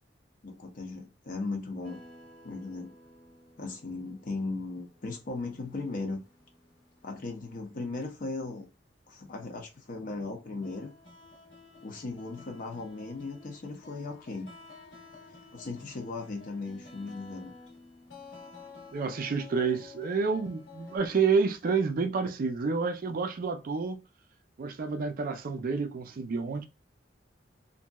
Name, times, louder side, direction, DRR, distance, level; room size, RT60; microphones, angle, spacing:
voice 1, 0.4-2.0 2.4-2.9 3.6-6.2 7.0-8.7 9.1-10.9 11.8-14.5 15.5-17.5, left 3 dB, 50° left, 0.5 m, -37 dB
sound 1, 1.8-8.2 8.7-8.8 9.7-9.9 10.4-21.0, left 3 dB, 80° left, 0.9 m, -52 dB
voice 2, 18.9-24.0 24.6-26.6, right 5 dB, 50° right, 0.4 m, -29 dB
2.8 x 2.6 x 2.3 m
head